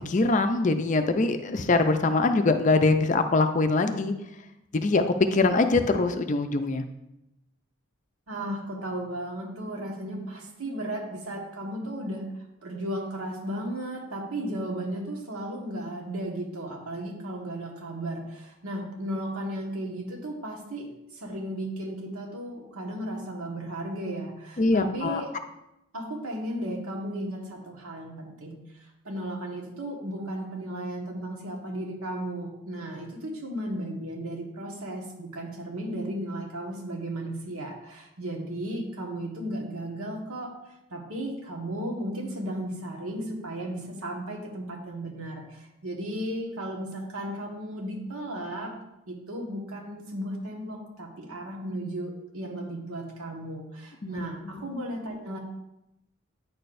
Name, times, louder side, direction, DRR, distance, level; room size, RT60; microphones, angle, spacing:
voice 1, 0.1-4.1 4.7-5.0 5.3-6.8 24.6-25.2 54.0-54.2 54.4-54.6, left 3 dB, 35° left, 7 dB, 0.4 m, -23 dB
voice 2, 8.3-12.2 12.6-20.9 21.1-25.3 25.9-40.5 40.9-48.8 49.1-55.4, right 1 dB, 90° right, 1 dB, 1.4 m, -35 dB
9.1 x 6.6 x 2.6 m, 0.89 s
head